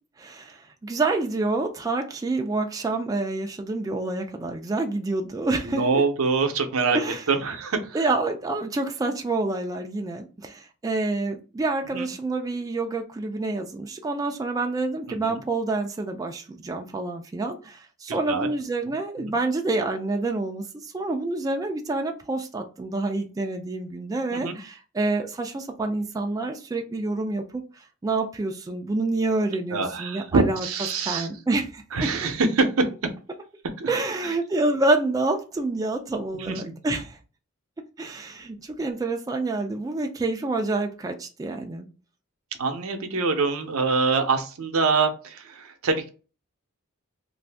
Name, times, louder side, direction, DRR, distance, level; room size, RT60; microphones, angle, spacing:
voice 1, 0.2-5.8 6.9-7.2 7.9-27.6 28.0-30.7 31.1-32.1 33.9-37.2 38.0-41.9, right 2 dB, 15° right, 0.3 m, -27 dB
voice 2, 5.6-7.0 7.3-8.0 11.9-12.1 15.1-15.4 18.1-18.5 19.2-19.3 24.3-24.6 29.7-31.3 31.9-32.9 33.8-33.9 34.2-34.3 36.4-36.7 42.6-46.1, right 4 dB, 85° right, 0.6 m, -25 dB
2.6 x 2.5 x 3.3 m
head